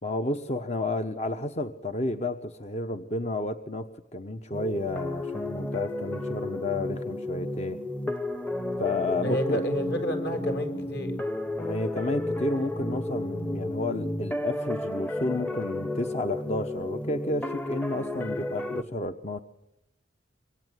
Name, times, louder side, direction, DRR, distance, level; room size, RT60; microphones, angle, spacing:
voice 1, 0.0-7.8 8.8-9.6 11.6-19.4, left 2 dB, 35° left, 8 dB, 1.1 m, -31 dB
sound 1, 4.5-18.8, left 1 dB, 10° left, 0.9 m, -32 dB
voice 2, 8.8-11.2, equal, 60° left, 7 dB, 6.4 m, -31 dB
26.0 x 23.5 x 9.3 m, 0.85 s
head